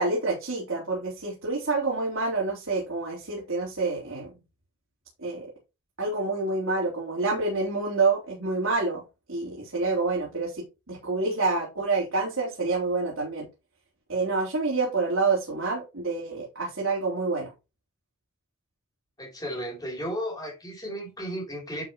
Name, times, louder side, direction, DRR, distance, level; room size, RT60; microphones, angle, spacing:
voice 1, 0.0-4.3 5.2-5.5 6.0-9.0 9.3-13.5 14.1-17.5, right 3 dB, 70° right, 3.7 m, -27 dB
voice 2, 19.2-21.8, equal, 20° left, 3.5 m, -34 dB
11.0 x 5.8 x 3.1 m
head